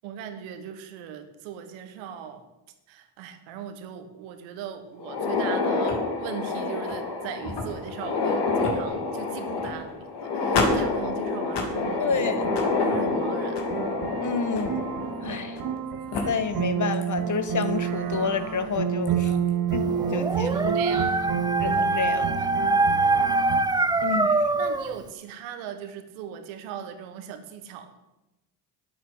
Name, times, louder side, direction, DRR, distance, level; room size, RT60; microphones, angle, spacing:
voice 1, 0.0-2.4 2.9-12.2 12.8-13.7 19.1-19.4 20.4-21.3 23.8-24.2 24.5-28.0, right 8 dB, 80° right, 8 dB, 1.7 m, -39 dB
sound 1, 5.0-15.8 16.1-16.2 17.0-17.1 17.6-17.7 19.1-19.3, left 3 dB, 60° left, 2.9 m, -28 dB
sound 2, 11.8-23.6, right 8 dB, 45° right, 1.3 m, -30 dB
voice 2, 12.0-12.5 14.2-14.9 15.2-15.6 16.2-19.3 19.7-20.8 21.6-22.5 24.0-24.3, left 5 dB, 40° left, 11 dB, 1.4 m, -29 dB
Dog, 19.9-25.0, right 3 dB, 10° right, 0.6 m, -24 dB
9.5 x 8.5 x 8.1 m, 0.97 s
supercardioid pair, 70°, 46 cm